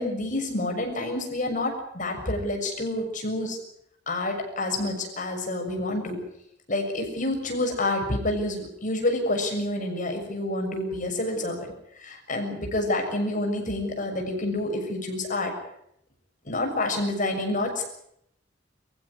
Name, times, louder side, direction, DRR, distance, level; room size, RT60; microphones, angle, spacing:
voice 1, 0.0-3.6 4.1-6.2 6.7-11.7 12.0-15.5 16.4-17.8, left 1 dB, 45° left, 3 dB, 6.7 m, -28 dB
24.0 x 15.0 x 9.8 m, 0.76 s
head